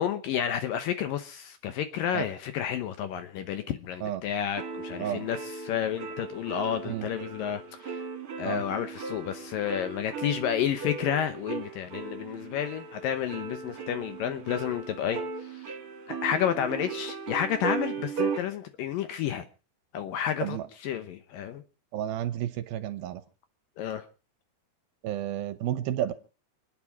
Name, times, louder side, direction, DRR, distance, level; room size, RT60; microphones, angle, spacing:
voice 1, 0.0-8.1 8.4-15.8 16.1-19.4 19.9-21.6 23.8-24.1, left 9 dB, 70° left, 9 dB, 2.3 m, -31 dB
sound 1, 4.6-18.4, right 5 dB, 45° right, 2.1 m, -37 dB
voice 2, 21.9-23.2 25.0-26.1, right 11 dB, 75° right, 12 dB, 2.5 m, -31 dB
28.5 x 9.5 x 4.7 m, 0.36 s
omnidirectional pair, 4.8 m